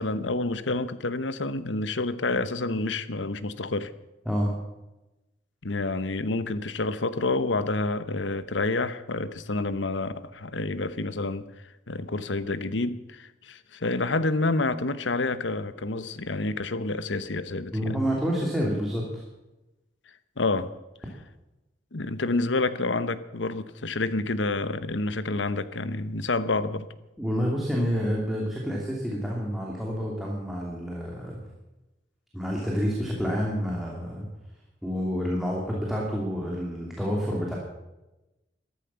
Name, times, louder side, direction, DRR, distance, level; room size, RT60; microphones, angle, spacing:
voice 1, 0.0-3.9 5.6-11.4 11.9-18.0 20.4-20.7 21.9-26.9, left 3 dB, 85° left, 1.0 m, -28 dB
voice 2, 17.7-19.2 27.2-31.4 32.3-34.3 34.8-37.6, equal, ahead, 2.8 m, -28 dB
14.0 x 13.5 x 7.0 m
head